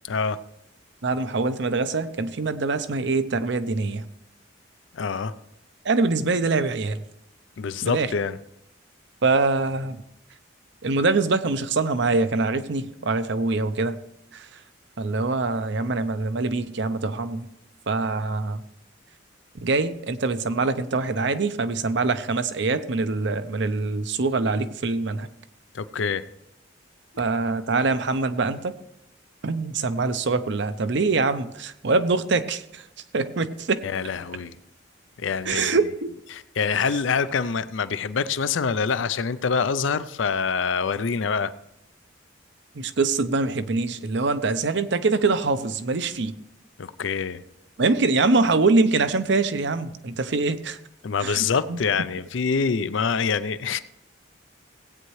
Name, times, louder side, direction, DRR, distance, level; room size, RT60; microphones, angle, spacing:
voice 1, 0.0-0.4 4.9-5.3 7.6-8.4 25.7-26.2 33.8-34.6 35.2-35.8 36.3-41.5 46.8-47.4 51.0-53.8, left 5 dB, 70° left, 14 dB, 0.5 m, -25 dB
voice 2, 1.0-4.0 5.8-7.0 7.8-8.1 9.2-10.0 10.8-14.0 14.3-14.5 15.0-17.5 17.9-18.6 19.6-25.3 27.2-28.7 29.4-32.8 33.1-33.8 35.5-36.1 42.8-46.3 47.8-50.8 51.2-51.8, right 3 dB, 60° right, 12 dB, 0.6 m, -24 dB
17.0 x 9.0 x 3.2 m, 0.80 s
head